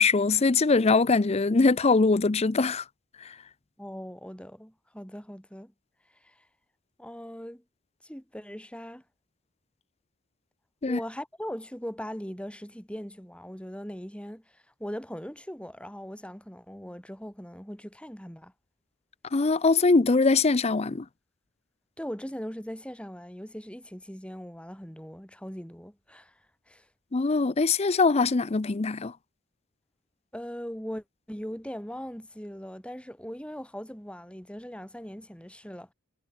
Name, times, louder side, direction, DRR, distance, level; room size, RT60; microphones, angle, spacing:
voice 1, 0.0-2.8 10.8-11.0 19.3-21.0 27.1-29.1, left 4 dB, 30° left, 0.5 m, -22 dB
voice 2, 3.8-5.7 6.2-6.4 7.0-7.6 8.0-9.0 10.8-18.5 22.0-26.3 26.7-26.8 30.3-35.9, equal, 5° left, 4.5 m, -40 dB
head